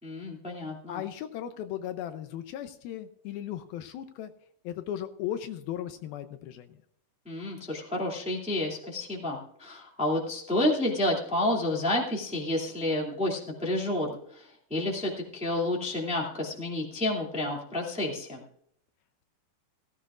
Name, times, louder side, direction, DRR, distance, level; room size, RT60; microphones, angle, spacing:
voice 1, 0.0-1.0 7.2-18.4, left 1 dB, 5° right, -1 dB, 1.5 m, -30 dB
voice 2, 0.9-4.3 4.6-6.8, left 11 dB, 80° left, 9 dB, 2.5 m, -36 dB
16.0 x 16.0 x 2.5 m, 0.67 s
omnidirectional pair, 4.5 m